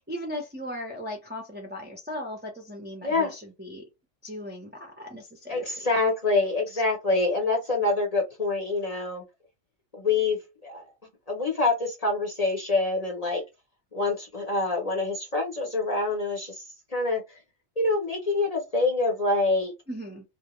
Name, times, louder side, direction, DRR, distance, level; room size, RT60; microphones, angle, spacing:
voice 1, 0.0-3.8 4.2-5.9 6.7-6.8 19.9-20.2, left 1 dB, 15° right, 0.4 m, -37 dB
voice 2, 3.0-3.3 5.5-9.2 9.9-10.9 11.3-13.4 13.9-16.6 16.9-17.2 17.8-19.7, left 3 dB, 40° left, 0.7 m, -26 dB
2.2 x 2.1 x 2.9 m
omnidirectional pair, 1.2 m